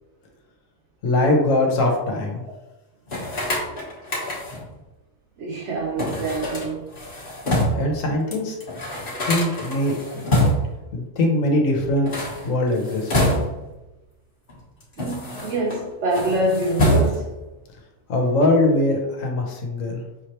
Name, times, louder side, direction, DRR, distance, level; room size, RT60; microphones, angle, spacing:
voice 1, 1.0-2.4 7.7-8.5 9.2-10.3 10.9-13.3 18.1-20.0, left 1 dB, 75° left, 1.3 m, -22 dB
sound 1, 3.1-4.7 6.0-7.9 8.3-8.4 8.6-10.8 11.9-13.8 14.5-15.8 16.1-17.4, left 1 dB, 45° left, 1.2 m, -25 dB
voice 2, 5.4-6.9 15.0-17.3, right 2 dB, 65° right, 0.9 m, -25 dB
5.6 x 3.2 x 2.9 m
omnidirectional pair, 1.4 m